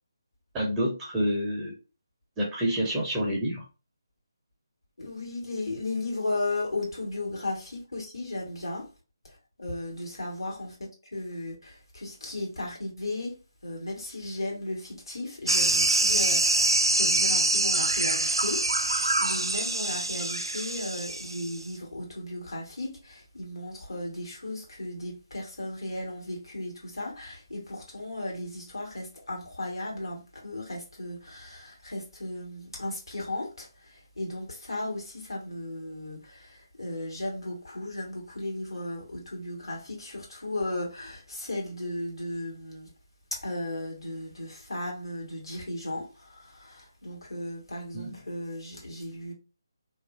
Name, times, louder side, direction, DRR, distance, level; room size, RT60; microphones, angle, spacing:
voice 1, 0.5-1.8 2.4-3.6 47.9-48.2, equal, 10° right, 0.5 m, -28 dB
voice 2, 5.0-8.9 9.2-10.8 11.0-13.4 13.6-42.9 43.3-49.3, left 2 dB, 70° left, 1.2 m, -35 dB
sound 1, 15.5-21.6, right 2 dB, 75° right, 0.4 m, -25 dB
2.9 x 2.4 x 2.4 m
figure-of-eight pair, 150°, 2 cm